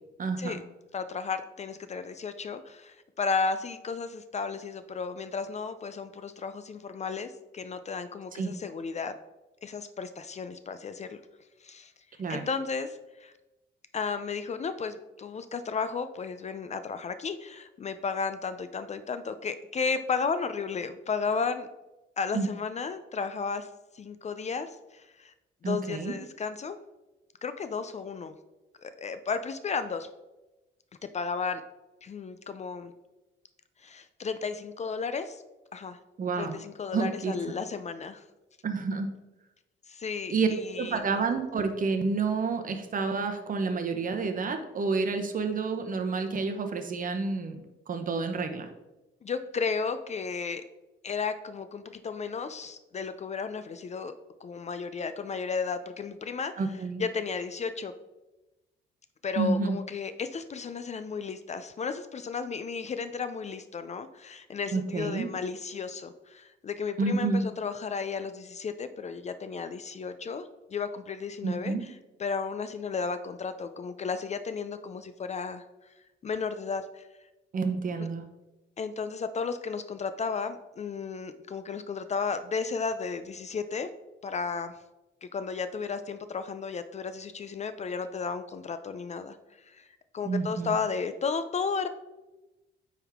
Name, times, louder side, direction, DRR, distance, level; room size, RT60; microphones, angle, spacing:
voice 1, 0.2-0.6 8.4-8.5 12.2-12.5 22.3-22.5 25.6-26.1 36.2-36.6 36.9-37.3 38.6-39.1 40.3-40.5 40.8-47.6 47.9-48.7 56.6-57.0 59.4-59.8 64.7-65.3 67.0-67.4 71.4-71.8 77.5-78.3 90.2-90.7, right 4 dB, 45° right, 6 dB, 0.9 m, -29 dB
voice 2, 0.9-9.1 9.6-11.2 11.6-11.9 12.3-13.3 13.9-21.7 22.2-23.7 23.9-25.3 25.6-26.8 27.4-28.3 28.8-30.1 31.1-31.6 32.0-32.9 33.8-35.4 35.7-36.0 36.4-38.2 39.9-41.0 49.2-50.6 51.0-54.1 54.4-56.5 57.0-57.9 59.2-75.6 76.2-77.0 78.8-83.9 84.2-84.7 85.2-89.9 90.1-91.9, left 5 dB, 35° left, 11 dB, 0.4 m, -33 dB
8.9 x 3.6 x 3.6 m, 1.0 s
cardioid pair, 90°, 20 cm